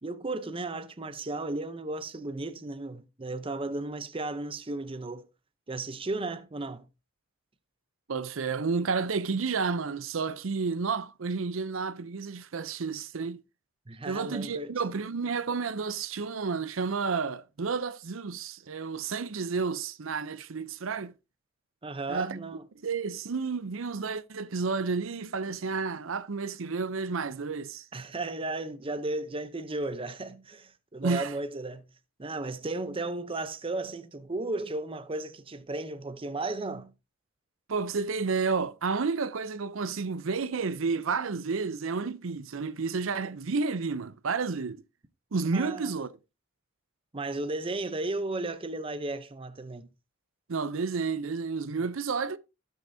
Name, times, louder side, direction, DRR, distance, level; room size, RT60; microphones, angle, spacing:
voice 1, 0.0-5.2 5.7-6.8 13.9-14.7 21.8-22.6 27.9-31.9 32.2-36.9 45.5-45.9 47.1-49.9, right 2 dB, 25° right, 0.7 m, -34 dB
voice 2, 8.1-13.4 14.1-21.1 22.1-22.4 22.8-27.9 31.0-31.3 37.7-44.8 45.3-46.1 50.5-52.4, right 4 dB, 75° right, 0.6 m, -31 dB
16.5 x 6.4 x 2.7 m
head